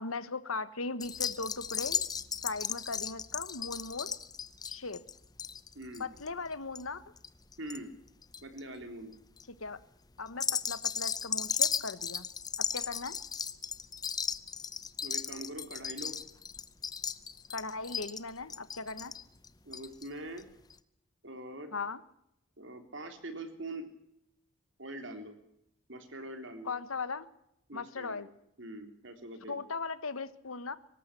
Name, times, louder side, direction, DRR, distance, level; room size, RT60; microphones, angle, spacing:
voice 1, 0.0-2.0 2.4-4.2 4.7-5.0 6.0-7.0 9.6-9.8 10.2-12.3 12.7-13.2 17.5-19.1 21.7-22.0 26.6-27.3 27.7-28.3 29.5-30.8, left 4 dB, 90° left, 13 dB, 1.4 m, -38 dB
sound 1, 1.0-7.8 8.1-8.6 9.1-9.4 10.3-20.1 20.4-20.5 20.7-20.8, left 6 dB, 20° left, 0.7 m, -36 dB
voice 2, 5.8-6.1 7.6-7.9 8.4-9.1 15.0-16.2 19.7-20.5 21.2-21.7 22.6-23.9 24.8-25.4 25.9-26.7 27.7-28.3 28.6-29.6, right 1 dB, 60° right, 6 dB, 3.5 m, -43 dB
24.0 x 13.5 x 8.3 m, 0.78 s
head